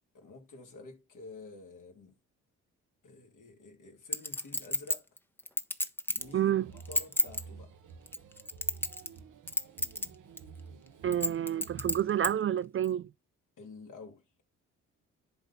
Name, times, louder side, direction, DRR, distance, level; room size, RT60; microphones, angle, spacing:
voice 1, 0.1-2.1 3.0-5.1 6.1-6.5 6.9-7.7 13.6-14.2, left 3 dB, 60° left, 2.8 m, -49 dB
Chink clink, 4.1-6.3 6.8-7.4 8.1-9.2 9.5-10.1 10.4-10.5 11.1-12.3 12.8-12.9, left 1 dB, 5° left, 1.1 m, -30 dB
sound 1, 6.2-12.3, right 5 dB, 60° right, 1.2 m, -51 dB
voice 2, 6.3-6.7 11.0-13.1, right 10 dB, 40° right, 0.4 m, -29 dB
11.0 x 4.0 x 4.1 m
hypercardioid pair, 50°, 35 cm